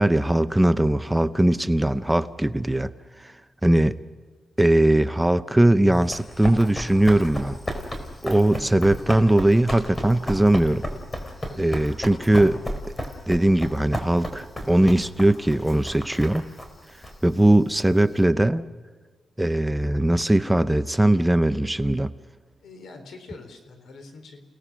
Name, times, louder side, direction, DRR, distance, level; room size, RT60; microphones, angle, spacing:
voice 1, 0.0-2.9 3.2-3.3 3.6-3.9 4.6-7.6 8.2-10.8 11.6-12.6 13.3-16.4 17.2-18.6 19.4-22.1, right 1 dB, 10° right, 12 dB, 0.7 m, -20 dB
Run, 5.9-18.2, equal, 20° left, 4.1 m, -34 dB
voice 2, 22.6-24.4, left 3 dB, 80° left, 7 dB, 4.0 m, -44 dB
30.0 x 18.5 x 6.2 m, 1.5 s
cardioid pair, 100°, 0 cm